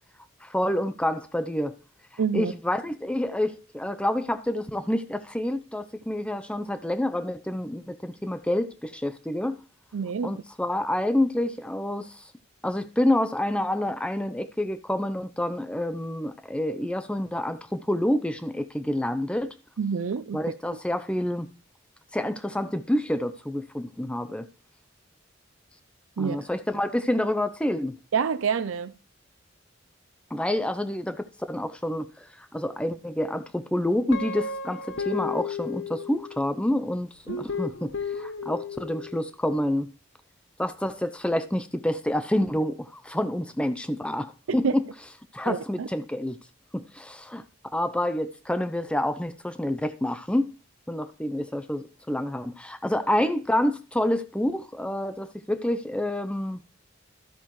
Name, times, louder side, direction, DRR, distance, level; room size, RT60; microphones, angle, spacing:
voice 1, 0.4-1.8 2.3-9.6 10.2-12.2 12.6-19.5 20.3-21.5 22.1-24.5 26.2-28.0 30.3-32.3 32.5-39.9 40.6-44.8 45.3-46.4 46.7-47.4 47.7-50.5 50.9-56.6, left 1 dB, 5° left, 0.6 m, -28 dB
voice 2, 2.2-2.5 9.9-10.3 19.8-20.4 26.2-26.4 28.1-28.9 37.3-37.4 44.5-44.7 45.4-45.9, right 6 dB, 90° right, 0.5 m, -27 dB
Guitar, 34.1-36.6 37.3-39.2, left 5 dB, 65° left, 0.8 m, -34 dB
13.0 x 8.1 x 3.1 m
head